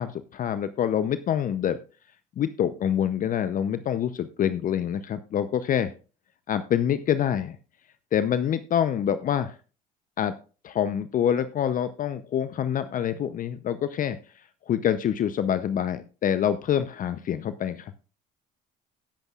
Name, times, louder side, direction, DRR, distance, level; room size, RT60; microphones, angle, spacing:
voice 1, 0.0-1.8 2.4-5.9 6.5-7.6 8.1-9.6 10.2-10.3 10.6-14.2 14.7-17.9, left 9 dB, 45° left, 12 dB, 0.7 m, -26 dB
17.5 x 7.9 x 2.4 m, 0.35 s
hypercardioid pair, 70°, 20 cm